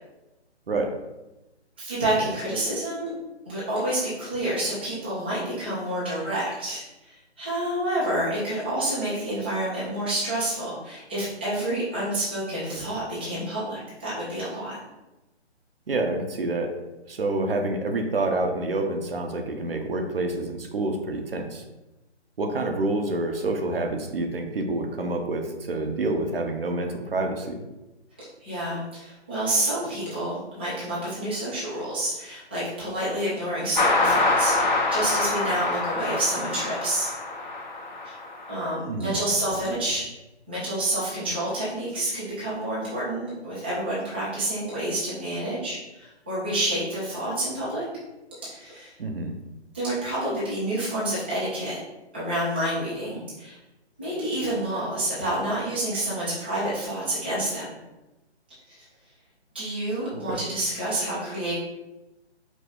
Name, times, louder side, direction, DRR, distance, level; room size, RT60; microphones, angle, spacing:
voice 1, 1.8-3.1 3.5-14.8 28.4-37.1 38.0-38.1 38.5-40.0 40.5-47.8 48.4-48.9 49.7-51.8 52.1-53.6 54.0-57.6 58.5-58.9 59.5-61.5, right 1 dB, 10° right, -13 dB, 0.4 m, -28 dB
voice 2, 15.9-16.7 17.1-21.6 22.4-27.6 38.9-39.2 49.0-49.3 60.1-60.4, right 2 dB, 55° right, 3 dB, 0.7 m, -27 dB
sound 1, 33.7-38.6, left 2 dB, 40° left, 0.7 m, -25 dB
5.0 x 2.0 x 3.8 m, 1.0 s
figure-of-eight pair, 145°, 34 cm